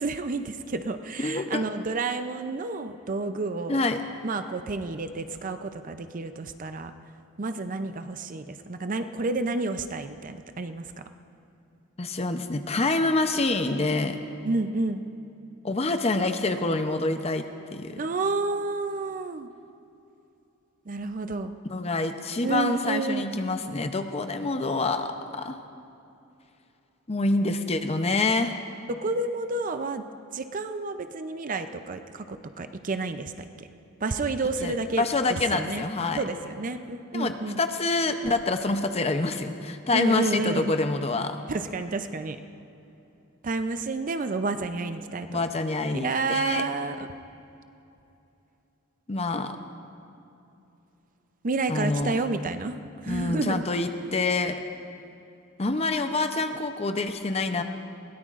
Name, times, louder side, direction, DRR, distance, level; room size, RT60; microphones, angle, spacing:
voice 1, 0.0-3.8 4.2-6.9 7.4-10.9 14.4-15.0 18.0-19.5 20.9-21.5 22.4-23.3 28.9-30.0 30.3-33.7 34.0-35.0 35.3-35.8 36.2-37.6 39.9-40.7 41.5-42.4 43.4-45.4 45.9-47.0 51.4-52.8 53.0-53.6, right 3 dB, 40° right, 9 dB, 0.5 m, -30 dB
voice 2, 1.2-1.6 3.7-4.0 12.0-14.2 15.6-17.4 17.7-18.0 21.7-25.6 27.1-28.6 34.6-36.2 37.1-41.4 45.3-46.7 49.1-49.6 51.7-52.2 53.1-54.6 55.6-57.6, left 2 dB, 30° left, 7 dB, 0.6 m, -26 dB
21.5 x 17.5 x 2.5 m, 2.8 s
head